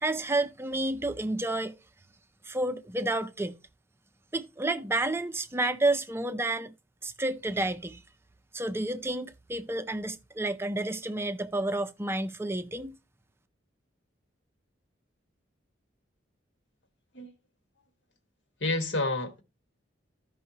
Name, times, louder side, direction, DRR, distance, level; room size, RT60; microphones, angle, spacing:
voice 1, 0.0-1.8 2.5-3.6 4.3-6.7 7.0-8.0 8.5-13.0, right 2 dB, 10° right, 0.4 m, -30 dB
voice 2, 18.6-19.4, left 2 dB, 70° left, 1.5 m, -29 dB
14.0 x 5.5 x 2.8 m
head